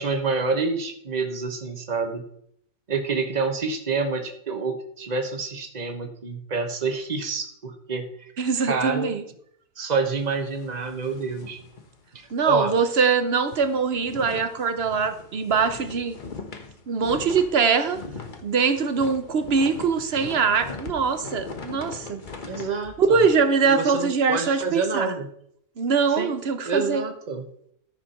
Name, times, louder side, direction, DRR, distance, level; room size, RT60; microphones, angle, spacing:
voice 1, 0.0-2.3 2.9-8.3 8.6-9.1 9.8-11.6 12.1-12.7 22.5-23.2 23.6-25.3 26.2-26.3 26.6-27.4, right 4 dB, 30° right, 6 dB, 1.3 m, -28 dB
voice 2, 8.4-9.2 12.3-16.2 16.9-18.0 18.4-22.2 23.0-25.1 25.8-27.0, right 5 dB, 50° right, 10 dB, 0.9 m, -23 dB
sound 1, 10.2-12.4 12.8-12.9 13.2-24.4, left 4 dB, 35° left, 1.1 m, -40 dB
14.0 x 5.0 x 5.8 m, 0.69 s
omnidirectional pair, 1.6 m